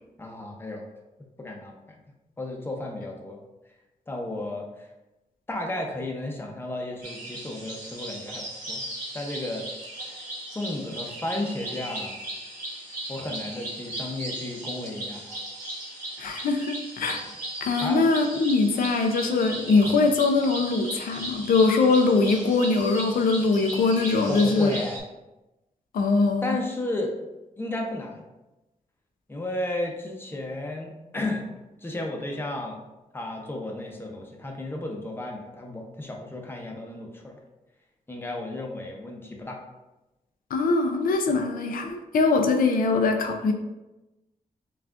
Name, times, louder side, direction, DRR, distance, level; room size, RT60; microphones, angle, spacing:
voice 1, 0.2-0.8 1.4-1.8 2.4-3.4 4.1-4.9 5.5-8.8 9.1-9.7 10.1-10.2 10.5-12.2 13.1-15.3 17.8-18.0 24.3-25.0 26.4-27.1 27.6-28.2 29.3-31.5 31.8-32.8 33.1-37.4 38.1-39.6, left 1 dB, 15° left, 0 dB, 0.6 m, -33 dB
sound 1, 7.0-25.0, right 1 dB, 75° right, 1.4 m, -37 dB
voice 2, 16.2-17.2 17.6-24.7 25.9-26.5 40.5-43.5, left 3 dB, 85° left, 4 dB, 0.5 m, -22 dB
5.7 x 2.4 x 2.4 m, 1.0 s
wide cardioid pair, 110°, 14 cm